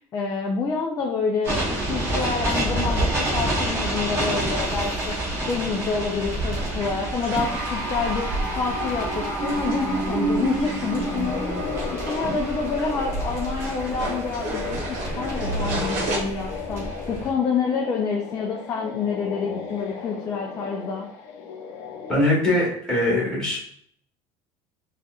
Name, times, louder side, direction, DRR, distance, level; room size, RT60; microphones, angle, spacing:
voice 1, 0.0-5.1 5.5-11.5 11.9-21.1, left 5 dB, 25° left, 0 dB, 0.4 m, -28 dB
sound 1, 1.4-17.3, right 1 dB, 20° right, 1.2 m, -28 dB
sound 2, 1.5-16.2, right 2 dB, 75° right, 0.9 m, -34 dB
sound 3, 11.0-22.3, left 5 dB, 70° left, 0.6 m, -36 dB
voice 2, 22.1-23.6, left 1 dB, 5° left, -6 dB, 1.3 m, -21 dB
4.0 x 2.4 x 2.4 m, 0.63 s
cardioid pair, 160°, 13 cm